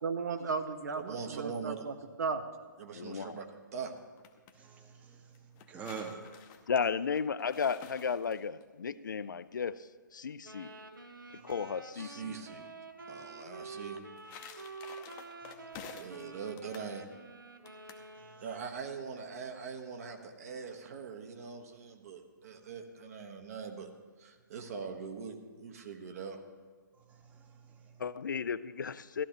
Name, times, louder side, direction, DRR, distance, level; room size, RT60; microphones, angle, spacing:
voice 1, 0.0-2.4, right 4 dB, 65° right, 9 dB, 0.8 m, -35 dB
voice 2, 1.0-1.8 2.8-3.5 3.7-3.9 11.9-12.7 13.1-14.0 15.9-17.1 18.4-23.9 24.2-26.4, right 6 dB, 45° right, 4 dB, 1.2 m, -42 dB
voice 3, 2.9-3.4 6.7-10.7 11.4-12.4 28.0-29.2, left 6 dB, 65° left, 16 dB, 0.4 m, -34 dB
sound 1, 4.0-4.5 5.3-8.6 13.8-16.2 16.6-16.9 17.7-18.1, left 8 dB, 25° left, 0.7 m, -51 dB
voice 4, 4.5-5.4 5.7-6.2 18.3-18.4 27.1-27.9, right 6 dB, 15° right, 4 dB, 0.9 m, -45 dB
sound 2, 10.4-18.8, right 3 dB, 80° right, 1.1 m, -48 dB
14.5 x 12.0 x 3.0 m, 1.5 s
figure-of-eight pair, 130°, 11 cm